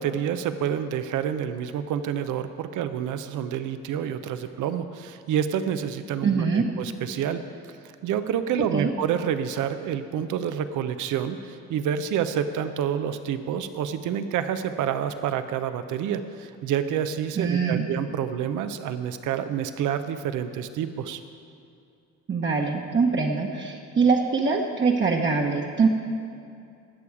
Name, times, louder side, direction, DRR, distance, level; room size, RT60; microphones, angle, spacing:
voice 1, 0.0-7.4 8.0-21.2, right 9 dB, 80° right, 10 dB, 0.7 m, -28 dB
voice 2, 6.2-6.7 8.7-8.9 17.4-17.9 22.3-25.9, right 5 dB, 40° right, 0 dB, 1.1 m, -23 dB
18.5 x 7.0 x 4.8 m, 2.5 s
cardioid pair, 90°, 30 cm